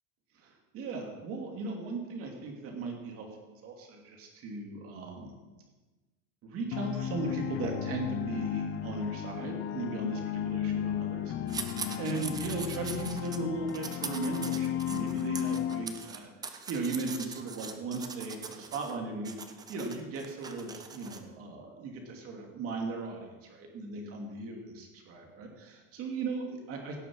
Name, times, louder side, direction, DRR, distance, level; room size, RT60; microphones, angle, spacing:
voice 1, 0.4-5.3 6.4-11.3 12.0-19.3 19.7-27.0, right 3 dB, 35° right, 2 dB, 2.6 m, -37 dB
sound 1, 6.7-15.8, left 10 dB, 30° left, 0.7 m, -34 dB
sound 2, 11.5-13.4 13.7-19.0 19.2-21.2, right 5 dB, 10° right, 0.5 m, -42 dB
16.5 x 7.2 x 6.3 m, 1.2 s
supercardioid pair, 160°, 39 cm